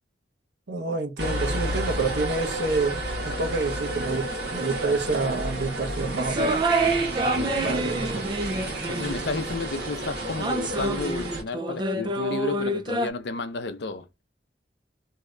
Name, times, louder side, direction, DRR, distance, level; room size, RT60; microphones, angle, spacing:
voice 1, 0.7-6.6 7.6-8.2, right 3 dB, 85° right, 0.9 m, -28 dB
sound 1, 1.2-11.4, right 1 dB, 60° right, 1.3 m, -31 dB
sound 2, 6.2-9.5 10.4-13.1, right 2 dB, 25° right, 0.4 m, -27 dB
voice 2, 7.3-8.0 8.9-14.1, left 3 dB, 65° left, 0.5 m, -32 dB
3.2 x 2.7 x 2.4 m
head